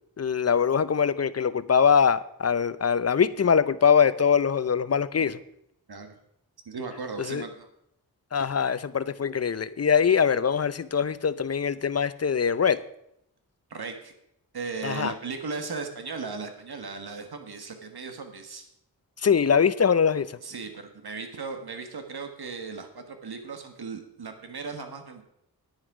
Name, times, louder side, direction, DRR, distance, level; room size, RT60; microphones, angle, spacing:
voice 1, 0.2-5.4 7.2-7.4 8.3-12.8 14.8-15.1 19.2-20.3, left 7 dB, 40° left, 16 dB, 0.6 m, -23 dB
voice 2, 6.6-7.7 13.7-14.1 14.5-18.7 20.4-25.2, right 4 dB, 75° right, 6 dB, 1.5 m, -37 dB
10.0 x 9.7 x 4.8 m, 0.78 s
wide cardioid pair, 65°, 38 cm